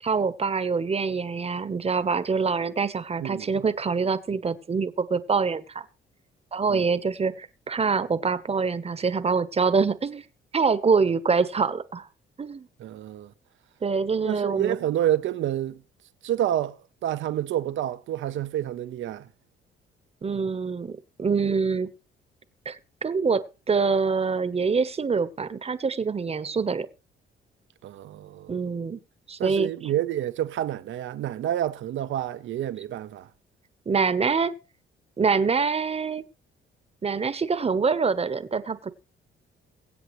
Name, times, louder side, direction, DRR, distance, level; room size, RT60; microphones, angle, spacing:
voice 1, 0.0-5.8 6.5-10.2 10.5-12.1 12.4-12.7 13.8-14.8 20.2-21.9 22.6-26.9 28.5-29.0 29.3-29.7 33.9-34.5 35.2-36.2 37.0-38.9, right 5 dB, 30° right, 1.1 m, -25 dB
voice 2, 3.2-3.6 6.7-6.9 12.8-13.3 14.3-15.8 16.2-19.3 27.8-28.6 29.4-33.3, right 12 dB, 75° right, 0.9 m, -28 dB
23.0 x 8.0 x 3.2 m
cardioid pair, 90°, 20 cm